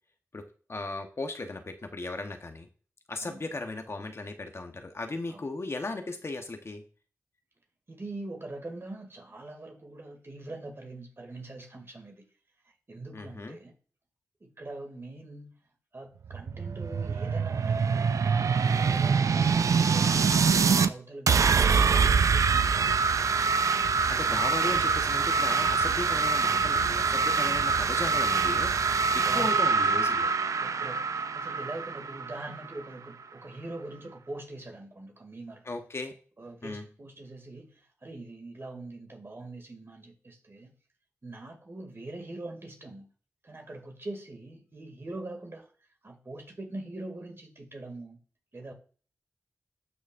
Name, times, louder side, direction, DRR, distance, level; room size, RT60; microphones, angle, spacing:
voice 1, 0.7-2.7 3.1-6.8 13.1-13.6 24.1-28.7 29.1-30.3 35.7-36.1 36.6-36.9, left 2 dB, 50° left, 6 dB, 1.0 m, -36 dB
voice 2, 7.9-12.3 12.9-13.7 14.4-15.6 15.9-18.1 18.5-23.5 24.3-24.9 27.8-27.9 29.2-29.7 30.6-35.6 36.4-40.7 41.2-43.1 43.4-45.7 46.0-48.2 48.5-48.7, right 2 dB, 45° right, 4 dB, 2.4 m, -43 dB
sound 1, 16.2-20.9 21.3-32.8, right 5 dB, 75° right, 0.4 m, -25 dB
12.0 x 6.2 x 2.5 m, 0.40 s
cardioid pair, 55°, 6 cm